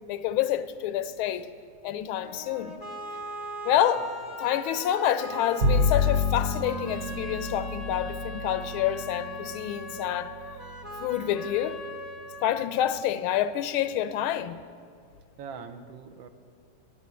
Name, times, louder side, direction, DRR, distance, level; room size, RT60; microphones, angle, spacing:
voice 1, 0.1-1.5 1.8-2.8 3.6-4.1 4.4-10.3 11.0-11.8 12.4-14.6, left 11 dB, 85° left, 1.5 m, -28 dB
sound 1, 2.2-13.2, equal, 20° left, 0.7 m, -40 dB
voice 2, 3.7-4.1 15.4-16.3, right 6 dB, 75° right, 1.6 m, -43 dB
Bowed string instrument, 5.6-12.1, left 3 dB, 55° right, 1.2 m, -30 dB
12.0 x 9.4 x 9.7 m
omnidirectional pair, 2.2 m